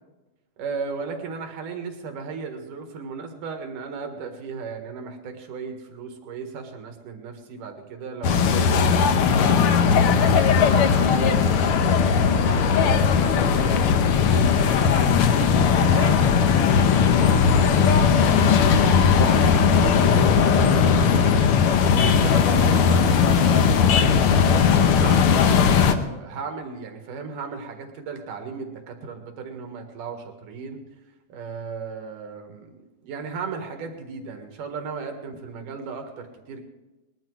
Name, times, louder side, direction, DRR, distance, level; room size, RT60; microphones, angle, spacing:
voice 1, 0.6-8.7 9.3-16.2 16.8-21.4 21.9-23.7 24.3-30.8 31.3-36.6, right 5 dB, 90° right, 4 dB, 3.2 m, -36 dB
sound 1, 8.2-25.9, left 6 dB, 70° left, 1.3 m, -18 dB
20.5 x 11.5 x 4.7 m, 1.1 s
omnidirectional pair, 3.6 m